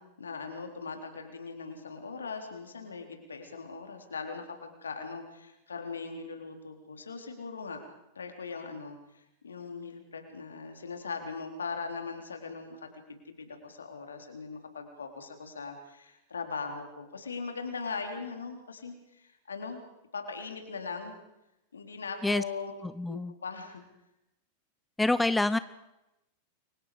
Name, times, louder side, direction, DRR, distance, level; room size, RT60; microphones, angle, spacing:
voice 1, 0.0-7.8 8.2-19.8 20.1-21.2 21.7-22.8 23.1-23.8, left 4 dB, 70° left, 5 dB, 3.7 m, -40 dB
voice 2, 22.8-23.3 25.0-25.6, left 2 dB, 5° left, 15 dB, 0.8 m, -27 dB
29.5 x 24.0 x 5.0 m, 0.90 s
figure-of-eight pair, 90°, 0 cm